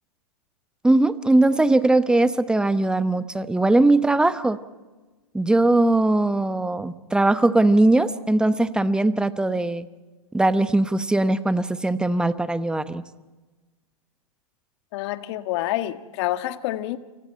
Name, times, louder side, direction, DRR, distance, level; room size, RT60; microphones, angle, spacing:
voice 1, 0.8-4.6 5.3-9.9 10.3-13.0, right 2 dB, 5° right, 13 dB, 1.0 m, -20 dB
voice 2, 14.9-17.0, left 15 dB, 50° left, 9 dB, 1.6 m, -27 dB
29.5 x 26.0 x 4.5 m, 1.2 s
hypercardioid pair, 115°, 18 cm